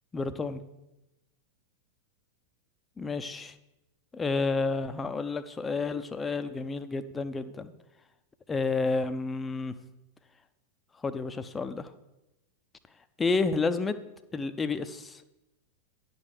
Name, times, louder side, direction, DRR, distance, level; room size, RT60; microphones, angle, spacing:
voice 1, 0.1-0.6 3.0-3.5 4.1-7.7 8.5-9.7 11.0-11.9 13.2-14.0 14.3-15.2, left 4 dB, 15° left, 11 dB, 0.6 m, -30 dB
10.0 x 5.4 x 6.5 m, 0.93 s
figure-of-eight pair, 90°, 0 cm